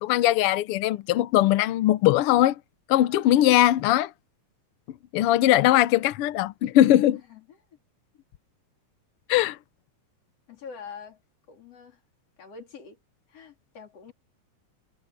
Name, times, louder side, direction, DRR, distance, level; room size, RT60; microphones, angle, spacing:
voice 1, 0.0-2.6 2.9-4.1 5.1-7.2 9.3-9.6, left 14 dB, 75° left, 1.3 m, -20 dB
voice 2, 6.9-7.6 8.1-8.2 10.5-11.2 11.5-12.0 12.4-13.0 13.3-14.1, left 5 dB, 55° left, 4.3 m, -45 dB
omnidirectional pair, 3.4 m